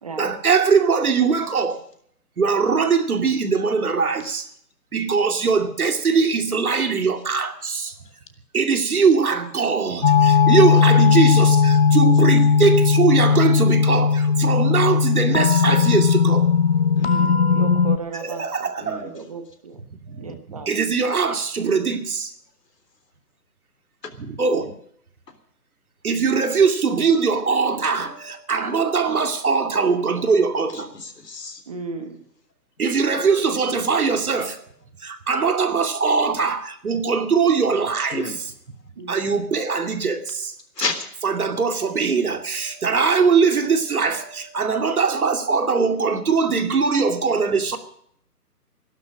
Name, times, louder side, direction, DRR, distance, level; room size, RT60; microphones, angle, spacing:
voice 1, 0.2-1.8 2.4-4.5 4.9-7.9 8.5-16.5 18.2-19.1 19.7-22.3 24.2-24.7 26.0-30.9 32.8-34.6 35.0-38.5 39.1-40.5 41.2-47.8, right 5 dB, 60° right, 2.5 m, -21 dB
sound 1, 10.0-18.0, left 5 dB, 40° left, 0.7 m, -17 dB
voice 2, 17.0-17.4 18.8-19.1 30.9-31.6 38.1-38.4 40.8-41.0, left 4 dB, 80° left, 3.6 m, -30 dB
voice 3, 17.5-18.5 18.8-19.8 20.2-20.7 31.7-32.2 33.1-33.2 39.0-39.2, right 4 dB, 20° right, 1.1 m, -35 dB
16.5 x 12.0 x 6.4 m
hypercardioid pair, 165°, 48 cm